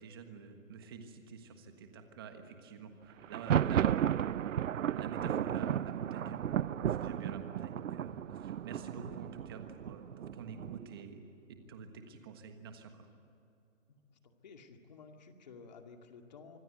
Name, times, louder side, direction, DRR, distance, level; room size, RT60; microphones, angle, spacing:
voice 1, 0.0-4.1 4.9-11.2 11.5-13.1, right 5 dB, 20° right, 6 dB, 1.5 m, -48 dB
Thunder, 3.2-11.0, right 10 dB, 70° right, 0.6 m, -34 dB
voice 2, 14.1-16.6, left 5 dB, 35° left, 4 dB, 2.3 m, -53 dB
25.5 x 22.5 x 9.4 m, 2.6 s
hypercardioid pair, 175°, 39 cm